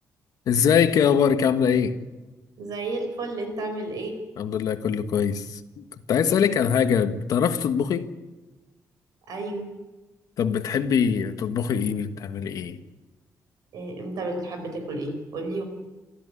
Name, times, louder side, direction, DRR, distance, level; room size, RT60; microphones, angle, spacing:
voice 1, 0.5-2.0 4.4-8.1 10.4-12.8, left 7 dB, 65° left, 1.5 m, -23 dB
voice 2, 2.6-4.2 6.2-6.5 9.3-9.7 13.7-15.6, right 2 dB, 70° right, 4.9 m, -32 dB
29.0 x 13.5 x 9.8 m
wide cardioid pair, 180°, 7 cm